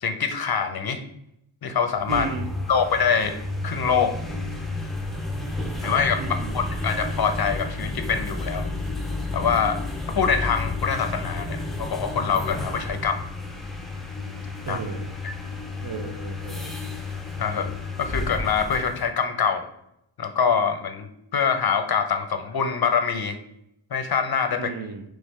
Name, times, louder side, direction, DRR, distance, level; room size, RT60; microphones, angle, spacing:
voice 1, 0.0-1.0 1.6-2.3 2.7-3.4 3.6-4.1 5.8-8.7 9.3-9.8 10.1-13.2 14.7-14.8 15.2-15.3 17.4-19.7 20.2-21.1 21.3-23.4 23.9-24.7, left 6 dB, 50° left, 7 dB, 0.5 m, -24 dB
sound 1, 1.9-19.1, left 2 dB, ahead, 0.4 m, -31 dB
voice 2, 2.1-2.5 6.2-6.6 14.6-15.0 15.8-16.8 24.6-25.0, right 5 dB, 55° right, 2 dB, 0.5 m, -34 dB
3.5 x 3.3 x 4.1 m, 0.79 s
wide cardioid pair, 160°, 49 cm